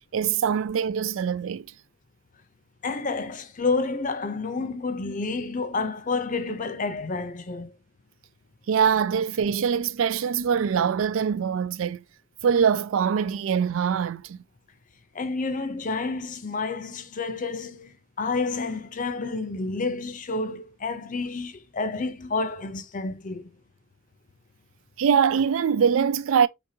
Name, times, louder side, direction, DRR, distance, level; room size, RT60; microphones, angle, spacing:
voice 1, 0.1-1.7 8.7-12.0 12.4-14.4 25.0-26.5, right 7 dB, 70° right, 0.3 m, -23 dB
voice 2, 2.8-7.7 15.1-23.5, left 3 dB, 40° left, 0.6 m, -29 dB
5.0 x 3.5 x 2.7 m
head